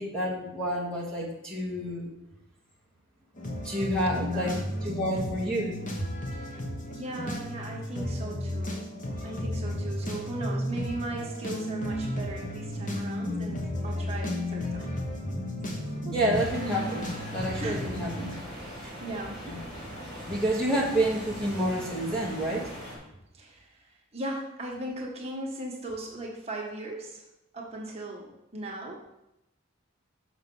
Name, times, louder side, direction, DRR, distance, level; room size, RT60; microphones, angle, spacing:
voice 1, 0.0-2.1 3.6-5.8 16.1-18.3 18.8-18.9 19.5-19.6 20.3-22.7, right 1 dB, 5° left, -4 dB, 1.3 m, -29 dB
sound 1, 3.4-18.4, left 1 dB, 40° left, 1.0 m, -33 dB
voice 2, 4.1-4.7 6.3-6.6 6.9-8.8 9.2-15.0 16.0-16.3 17.6-17.8 18.2-18.4 19.0-19.4 23.3-27.2 27.5-29.0, right 2 dB, 30° right, -2 dB, 1.4 m, -38 dB
sound 2, 16.3-23.0, equal, 25° left, 3.4 m, -41 dB
6.5 x 6.0 x 5.4 m, 0.86 s
head